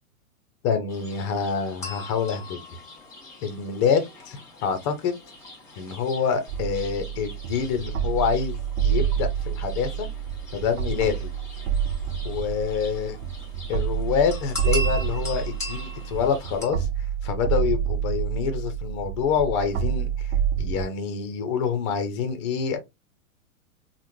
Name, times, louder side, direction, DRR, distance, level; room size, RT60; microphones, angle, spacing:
voice 1, 0.6-2.6 3.4-5.2 5.8-10.1 10.5-11.3 12.2-13.2 13.7-22.8, left 6 dB, 25° left, 0.4 m, -27 dB
sound 1, 0.9-16.7, left 1 dB, 5° left, 1.2 m, -40 dB
sound 2, 6.5-20.9, right 9 dB, 50° right, 0.5 m, -28 dB
3.4 x 2.1 x 2.8 m
hypercardioid pair, 120°, 43 cm